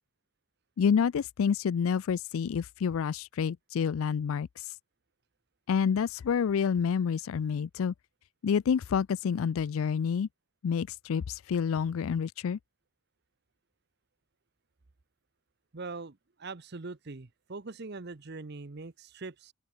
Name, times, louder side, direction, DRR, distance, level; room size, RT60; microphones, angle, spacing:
voice 1, 0.8-4.5 5.7-7.9 8.4-10.3 10.6-12.6, left 7 dB, 75° left, 0.4 m, -28 dB
voice 2, 15.7-19.5, right 3 dB, 50° right, 0.8 m, -42 dB
open air
head